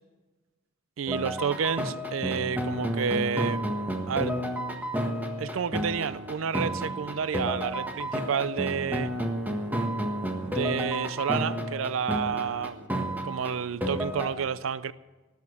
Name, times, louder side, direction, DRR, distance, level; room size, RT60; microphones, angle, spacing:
voice 1, 1.0-3.6 4.1-4.4 5.4-9.1 10.4-12.9 13.2-14.9, right 7 dB, 75° right, 0.4 m, -30 dB
sound 1, 1.1-14.3, equal, 10° right, 1.5 m, -31 dB
19.5 x 7.0 x 8.2 m
head